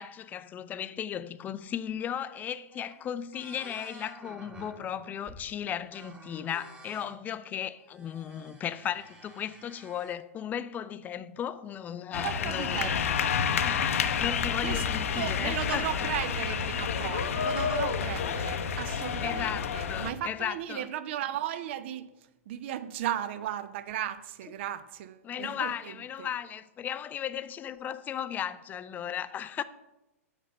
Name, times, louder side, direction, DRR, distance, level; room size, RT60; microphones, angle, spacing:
voice 1, 0.0-12.9 13.6-16.1 19.2-20.9 25.2-29.6, left 9 dB, 20° left, 0.5 m, -36 dB
sound 1, 2.4-2.5 2.7-3.0 3.3-5.5 5.9-7.2 7.8-10.1, right 2 dB, 15° right, 1.3 m, -51 dB
sound 2, 12.1-20.1, left 7 dB, 65° left, 0.8 m, -29 dB
voice 2, 12.1-13.4 14.6-14.8 15.2-22.1 22.5-26.3, right 11 dB, 50° right, 0.7 m, -36 dB
8.4 x 5.3 x 6.7 m
figure-of-eight pair, 110°, 8 cm